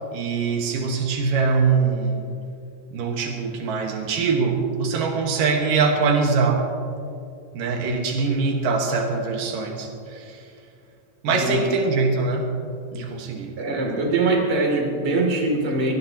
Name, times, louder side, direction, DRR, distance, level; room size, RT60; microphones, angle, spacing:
voice 1, 0.1-2.2 2.9-6.7 7.5-10.5 11.2-12.5 12.9-13.5, right 4 dB, 85° right, 2 dB, 3.1 m, -23 dB
voice 2, 13.6-15.9, right 2 dB, 40° right, -1 dB, 3.6 m, -22 dB
25.0 x 19.0 x 3.0 m, 2.5 s
omnidirectional pair, 3.8 m